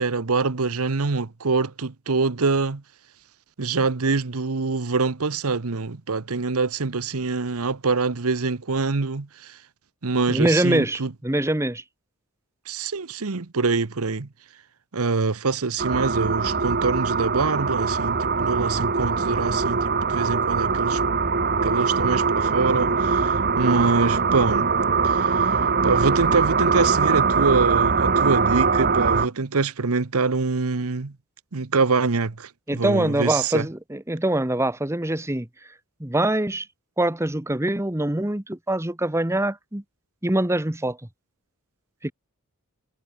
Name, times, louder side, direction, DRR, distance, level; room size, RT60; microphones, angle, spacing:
voice 1, 0.0-2.8 3.6-9.6 10.0-11.1 12.7-14.3 14.9-21.0 21.6-24.7 25.0-25.5 25.8-31.1 31.5-33.7, right 4 dB, 75° right, 1.0 m, -25 dB
voice 2, 10.3-11.8 32.7-35.5 36.0-36.7 37.0-39.8 40.2-41.0 42.0-42.1, right 1 dB, 10° right, 1.1 m, -24 dB
sound 1, 15.8-29.3, right 5 dB, 45° right, 1.7 m, -22 dB
head